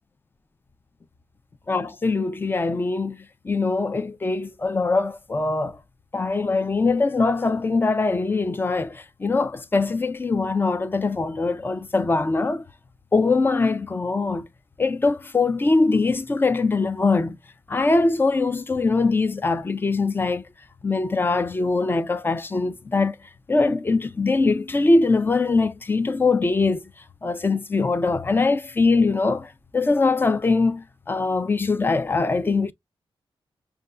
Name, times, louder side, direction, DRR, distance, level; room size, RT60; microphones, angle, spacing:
voice 1, 1.7-3.2 3.4-5.8 6.1-12.6 13.1-14.5 14.8-17.4 17.7-20.4 20.8-23.1 23.5-26.8 27.2-32.7, left 3 dB, 20° left, 0.4 m, -22 dB
6.5 x 2.3 x 2.4 m
wide cardioid pair, 155°, 10 cm